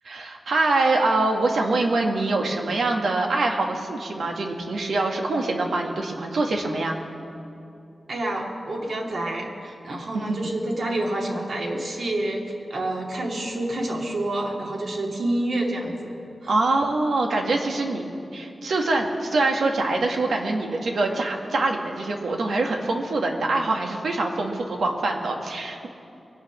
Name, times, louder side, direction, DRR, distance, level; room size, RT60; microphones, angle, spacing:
voice 1, 0.0-7.0 10.1-10.4 16.5-25.9, right 2 dB, 85° right, 2 dB, 1.7 m, -24 dB
voice 2, 8.1-12.4 12.7-16.2 16.4-16.5, right 1 dB, 65° right, -1 dB, 2.5 m, -28 dB
22.5 x 8.5 x 6.2 m, 2.7 s
wide cardioid pair, 95°, 0 cm